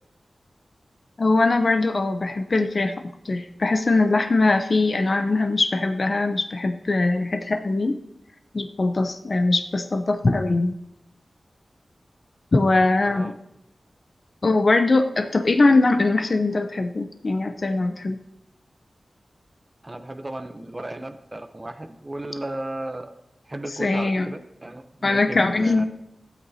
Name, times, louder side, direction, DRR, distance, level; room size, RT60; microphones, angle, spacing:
voice 1, 1.2-2.9 3.2-8.0 8.5-10.8 12.5-13.3 14.4-18.2 23.8-24.3 25.0-25.9, left 3 dB, 55° left, 7 dB, 0.7 m, -21 dB
voice 2, 19.8-23.1 23.4-25.9, right 1 dB, 30° right, 7 dB, 0.7 m, -34 dB
15.5 x 8.2 x 2.8 m, 0.83 s
wide cardioid pair, 60°, 0 cm